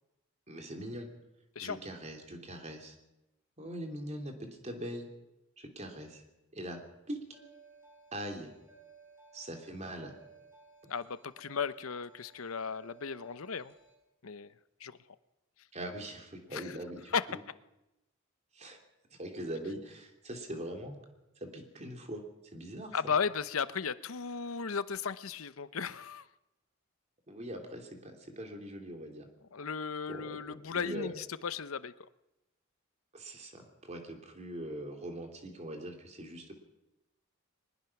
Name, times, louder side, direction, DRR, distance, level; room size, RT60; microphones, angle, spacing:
voice 1, 0.5-1.1 1.6-3.0 3.6-5.1 5.6-6.2 6.5-6.8 7.1-7.4 8.1-8.5 9.3-10.1 15.7-17.4 18.5-18.8 19.1-21.0 21.4-22.2 22.5-23.1 27.3-29.3 30.1-31.1 33.1-36.5, right 1 dB, 35° right, 3 dB, 3.1 m, -42 dB
sound 1, 7.3-13.9, right 4 dB, 15° right, 6.0 m, -59 dB
voice 2, 10.9-13.7 14.2-14.5 14.8-15.0 16.5-16.6 17.1-17.2 22.9-26.2 29.5-31.9, left 6 dB, 80° left, 14 dB, 0.8 m, -35 dB
22.0 x 20.0 x 6.0 m, 0.96 s
head